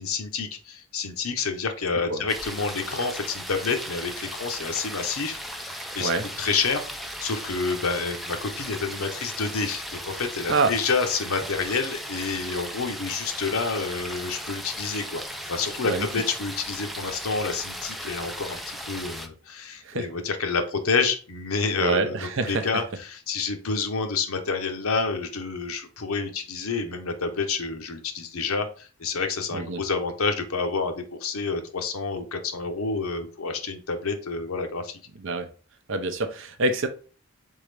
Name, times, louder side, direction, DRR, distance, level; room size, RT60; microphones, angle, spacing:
voice 1, 0.0-6.1 6.4-6.9 7.2-22.2 22.5-35.0, left 4 dB, 80° left, 0.8 m, -28 dB
sound 1, 2.3-19.3, equal, ahead, 0.4 m, -37 dB
voice 2, 21.8-22.8 29.5-29.8 35.2-35.5 35.9-36.9, right 3 dB, 60° right, 0.6 m, -26 dB
4.0 x 3.7 x 3.3 m
head